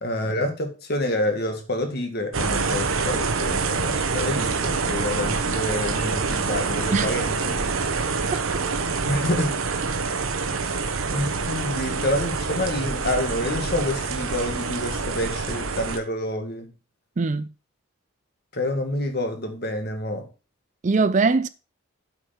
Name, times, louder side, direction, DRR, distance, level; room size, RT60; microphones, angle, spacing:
voice 1, 0.0-7.7 9.0-9.5 11.1-16.7 18.5-20.3, left 1 dB, 50° left, 1.8 m, -28 dB
sound 1, 2.3-16.0, right 4 dB, 80° right, 1.1 m, -26 dB
voice 2, 17.2-17.5 20.8-21.5, right 4 dB, 35° right, 0.4 m, -21 dB
7.9 x 5.8 x 5.6 m
head